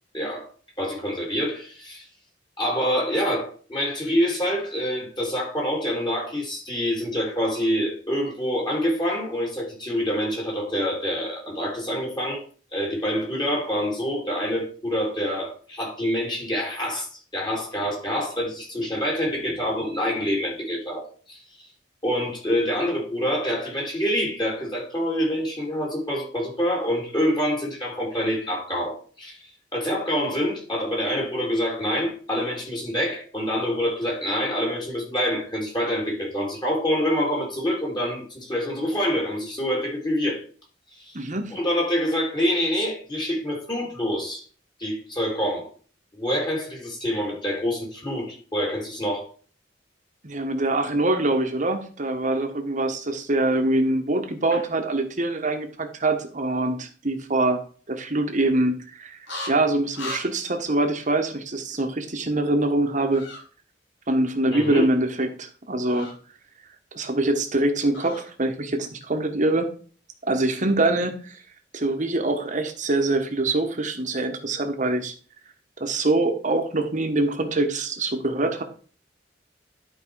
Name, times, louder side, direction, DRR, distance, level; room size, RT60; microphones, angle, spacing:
voice 1, 0.1-0.5 0.8-2.0 2.6-12.4 12.7-17.1 17.3-21.4 22.0-29.4 29.7-40.4 41.0-41.2 41.5-44.4 44.8-45.7 46.1-49.3 64.5-64.9, equal, 25° left, 2.9 m, -26 dB
voice 2, 41.1-41.5 50.2-57.6 57.9-59.2 59.5-63.3 64.1-66.1 66.9-69.7 70.2-71.4 71.7-75.1 75.8-78.6, right 2 dB, 45° right, 1.3 m, -24 dB
sound 1, 59.3-59.5 59.9-60.2 63.1-63.4 65.8-66.1 67.9-68.2, left 2 dB, 70° left, 2.9 m, -35 dB
11.5 x 4.7 x 4.7 m
head